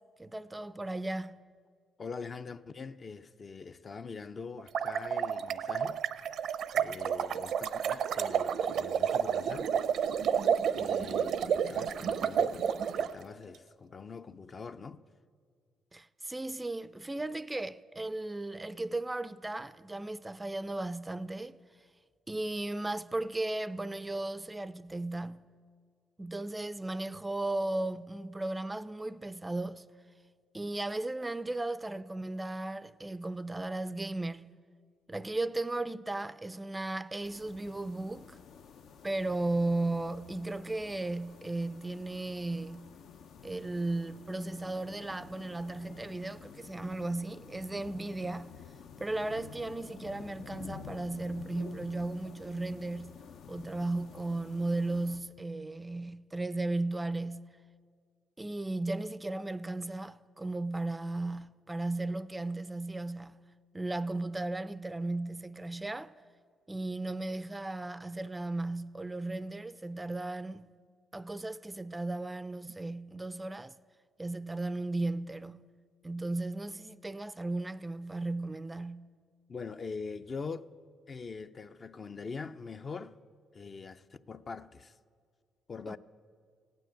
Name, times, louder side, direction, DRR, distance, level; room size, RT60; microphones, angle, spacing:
voice 1, 0.2-1.3 15.9-21.6 22.3-25.5 26.2-29.8 30.5-34.6 35.1-38.4 39.0-43.0 43.4-48.6 49.0-53.2 53.5-57.5 58.4-63.5 63.7-66.1 66.7-70.6 71.1-73.7 74.2-75.7 76.0-79.1 85.9-86.0, right 2 dB, 15° right, 0.4 m, -35 dB
voice 2, 2.0-6.0 6.7-9.7 10.7-15.0 79.5-80.7 81.1-83.2 83.5-84.9 85.7-86.0, left 4 dB, 40° left, 0.5 m, -43 dB
sound 1, 4.6-13.1, right 8 dB, 70° right, 0.6 m, -30 dB
sound 2, 37.2-55.2, left 7 dB, 75° left, 0.7 m, -51 dB
16.5 x 9.2 x 9.0 m
cardioid pair, 90°, 0 cm